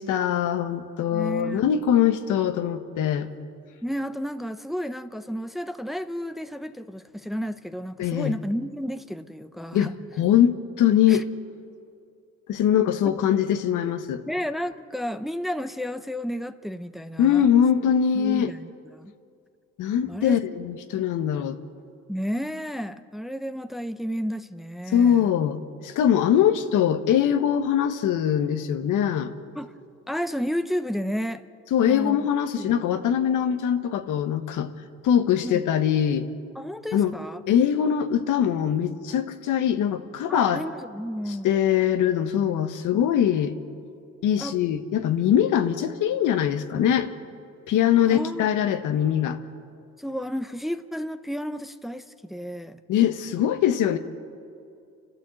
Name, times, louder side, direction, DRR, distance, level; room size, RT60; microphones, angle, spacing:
voice 1, 0.0-3.3 8.0-8.3 9.7-11.3 12.5-14.2 17.2-18.5 19.8-21.6 24.9-29.3 31.7-34.7 35.0-36.3 36.9-37.1 37.5-40.6 41.4-43.5 44.2-47.1 47.7-49.4 52.9-54.0, left 9 dB, 85° left, 8 dB, 1.3 m, -22 dB
voice 2, 1.1-1.6 3.8-9.9 11.1-11.2 13.0-13.1 14.3-17.5 18.1-19.1 20.1-20.4 22.1-25.3 29.6-29.7 30.1-31.4 31.9-32.3 32.6-32.8 35.4-35.6 36.5-37.4 40.3-41.5 44.4-44.6 48.1-48.5 50.0-52.8, equal, ahead, 10 dB, 0.8 m, -32 dB
30.0 x 12.5 x 7.8 m, 2.5 s
cardioid pair, 90°, 30 cm